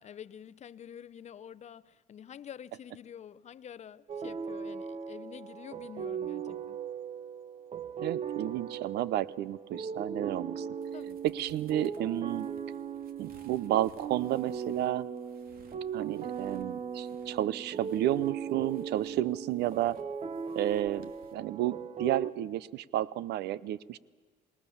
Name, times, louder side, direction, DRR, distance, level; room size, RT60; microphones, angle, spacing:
voice 1, 0.0-6.8 10.9-11.2, left 9 dB, 40° left, 16 dB, 0.7 m, -48 dB
sound 1, 4.1-22.3, right 7 dB, 40° right, 1.1 m, -38 dB
voice 2, 8.0-10.7 11.3-12.5 13.2-15.1 15.9-20.0 20.5-24.0, right 13 dB, 75° right, 21 dB, 0.7 m, -31 dB
Footsteps in snow, 10.4-21.3, right 4 dB, 60° right, 2.7 m, -61 dB
27.5 x 19.5 x 7.1 m, 1.5 s
cardioid pair, 110°, 17 cm